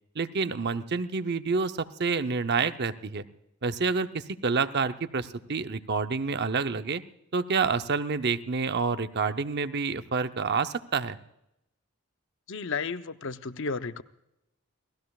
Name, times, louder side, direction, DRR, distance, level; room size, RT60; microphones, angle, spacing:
voice 1, 0.2-3.2 3.6-7.0 7.3-11.2, right 4 dB, 50° right, 10 dB, 0.7 m, -28 dB
voice 2, 12.5-14.0, left 4 dB, 60° left, 11 dB, 0.7 m, -33 dB
29.0 x 18.5 x 2.4 m, 0.85 s
head